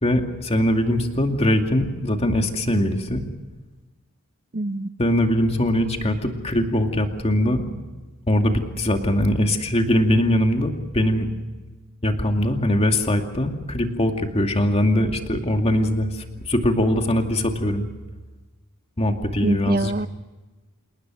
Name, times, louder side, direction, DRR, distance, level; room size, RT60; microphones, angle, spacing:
voice 1, 0.0-3.2 5.0-7.6 8.3-11.3 12.0-17.9 19.0-19.9, left 1 dB, 30° left, 4 dB, 2.4 m, -21 dB
voice 2, 4.5-4.9 19.4-20.1, right 2 dB, 45° right, 13 dB, 0.8 m, -24 dB
28.5 x 19.0 x 6.3 m, 1.2 s
head